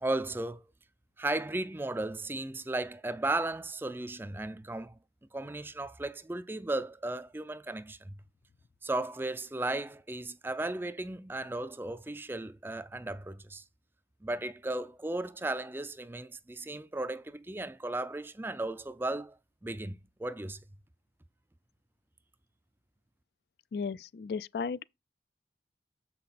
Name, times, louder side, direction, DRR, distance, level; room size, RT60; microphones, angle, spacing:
voice 1, 0.0-0.7 1.2-5.0 5.3-8.2 8.8-13.6 14.2-19.4 19.6-20.6, right 2 dB, 10° right, 0.4 m, -35 dB
voice 2, 23.7-24.8, left 5 dB, 65° left, 0.4 m, -35 dB
7.4 x 5.8 x 4.1 m
head